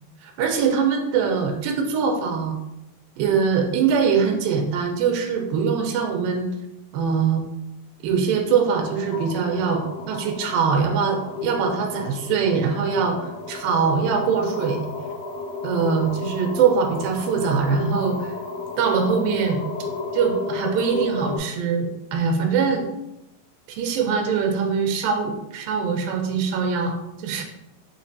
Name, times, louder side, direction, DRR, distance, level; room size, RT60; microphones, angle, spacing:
voice 1, 0.2-2.5 3.2-6.5 6.9-7.4 8.0-9.8 10.1-14.8 15.6-18.3 18.8-19.6 20.1-22.8 23.7-26.9 27.2-27.4, right 6 dB, 80° right, 3 dB, 2.4 m, -22 dB
sound 1, 8.8-21.4, left 4 dB, 60° left, 1.9 m, -33 dB
5.9 x 3.2 x 2.7 m, 0.88 s
omnidirectional pair, 4.2 m